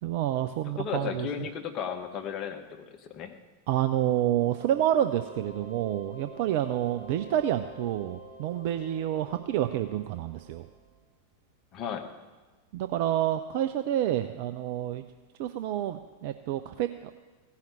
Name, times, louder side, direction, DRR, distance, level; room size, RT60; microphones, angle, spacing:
voice 1, 0.0-1.3 3.7-10.7 12.7-15.0 15.4-17.1, right 12 dB, 50° right, 9 dB, 0.5 m, -28 dB
voice 2, 0.8-3.3 11.7-12.1, left 8 dB, 35° left, 5 dB, 1.2 m, -34 dB
sound 1, 4.3-10.9, right 1 dB, 5° left, 5.5 m, -48 dB
16.0 x 5.7 x 8.8 m, 1.3 s
figure-of-eight pair, 90°, 0 cm